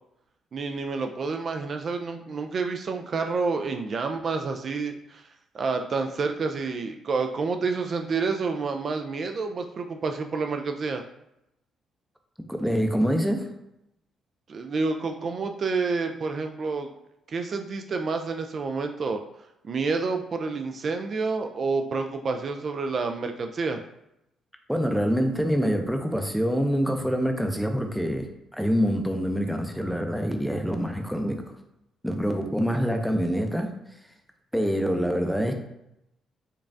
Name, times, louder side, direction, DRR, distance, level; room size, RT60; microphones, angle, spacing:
voice 1, 0.5-5.2 5.5-11.0 14.5-16.9 17.3-19.2 19.6-23.8, right 4 dB, 50° right, 5 dB, 0.3 m, -29 dB
voice 2, 12.5-13.5 24.7-28.3 28.5-31.4 32.0-33.7 34.5-35.5, equal, ahead, 4 dB, 0.5 m, -25 dB
5.1 x 2.3 x 2.6 m, 0.83 s
cardioid pair, 90°, 0 cm